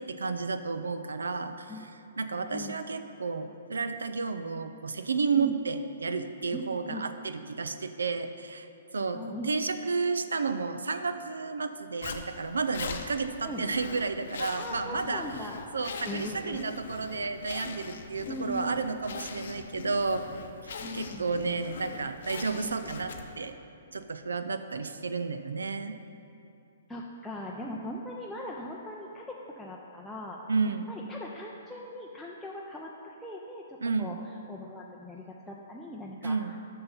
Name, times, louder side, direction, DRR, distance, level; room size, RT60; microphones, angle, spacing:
voice 1, 0.0-1.7 2.2-8.7 8.9-15.2 15.7-20.3 20.6-23.5 23.9-26.0 30.5-30.9 33.8-34.2 36.2-36.6, right 4 dB, 85° right, 10 dB, 0.4 m, -32 dB
voice 2, 2.2-2.7 5.4-5.5 6.5-7.0 9.1-9.5 13.4-13.6 14.5-15.6 16.0-16.6 18.3-18.9 20.8-21.3 26.9-30.4 30.7-34.2 34.5-36.6, equal, 5° left, -4 dB, 0.5 m, -40 dB
Zipper (clothing), 12.0-23.5, left 5 dB, 65° left, 0.7 m, -41 dB
6.8 x 5.6 x 5.6 m, 2.7 s
hypercardioid pair, 130°, 0 cm